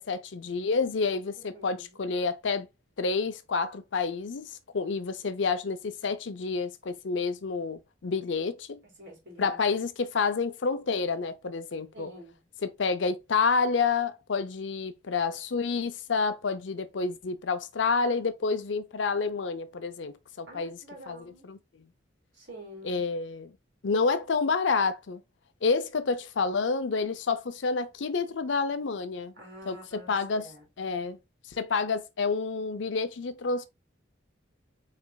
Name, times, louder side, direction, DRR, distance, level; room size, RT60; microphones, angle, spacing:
voice 1, 0.0-2.7 3.0-8.8 9.4-12.1 12.6-20.8 21.1-21.6 22.8-23.5 23.8-25.2 25.6-29.3 29.7-30.5 30.8-31.2 31.5-33.7, left 4 dB, 75° left, 0.6 m, -29 dB
voice 2, 1.4-2.1 9.0-9.6 11.9-12.4 20.5-21.5 22.3-23.0 29.4-30.6, equal, 70° right, 2.8 m, -48 dB
4.8 x 4.1 x 2.3 m
head